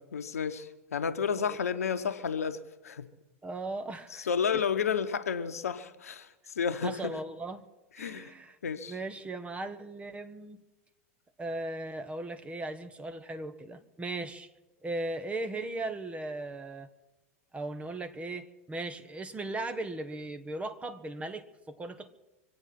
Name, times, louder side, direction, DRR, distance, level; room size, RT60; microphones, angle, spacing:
voice 1, 0.0-3.1 4.2-7.2 8.0-8.3 8.6-9.0, left 6 dB, 85° left, 9 dB, 1.1 m, -31 dB
voice 2, 3.4-4.3 4.5-4.6 6.8-7.7 8.0-10.6 11.4-14.5 14.8-16.9 17.5-22.2, right 2 dB, 15° right, 9 dB, 1.3 m, -38 dB
25.0 x 8.8 x 5.9 m, 1.1 s
hypercardioid pair, 100°, 8 cm